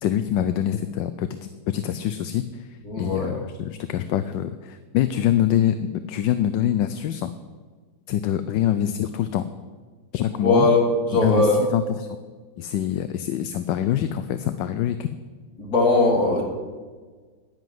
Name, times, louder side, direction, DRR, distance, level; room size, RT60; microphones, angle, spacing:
voice 1, 0.0-1.4 1.7-2.7 3.0-5.8 6.1-7.3 8.1-9.4 10.1-10.7 11.2-11.8 12.6-15.1, left 11 dB, 75° left, 11 dB, 1.2 m, -24 dB
voice 2, 2.8-3.3 10.4-11.6 15.6-16.4, left 2 dB, 45° left, 0 dB, 3.2 m, -20 dB
11.0 x 10.5 x 7.7 m, 1.4 s
omnidirectional pair, 2.1 m